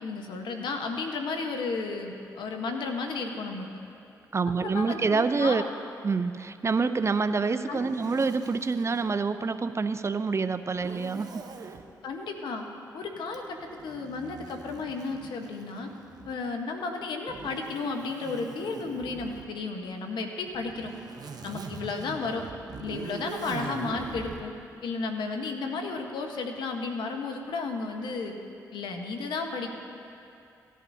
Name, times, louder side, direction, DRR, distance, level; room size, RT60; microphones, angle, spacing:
voice 1, 0.0-3.8 4.6-5.7 7.7-7.9 12.0-12.6 12.9-15.9 16.3-20.9 21.4-22.5 22.8-24.5 24.8-28.4 28.7-29.7, left 4 dB, 75° left, 3 dB, 1.2 m, -33 dB
voice 2, 4.3-5.6 6.0-11.3, right 4 dB, 35° right, 11 dB, 0.5 m, -27 dB
Zipper (clothing), 7.7-9.1 10.7-11.8 13.3-16.5 17.3-19.5 20.5-24.5, right 5 dB, 55° right, 0.9 m, -42 dB
17.5 x 11.0 x 2.8 m, 2.6 s
supercardioid pair, 50°, 8 cm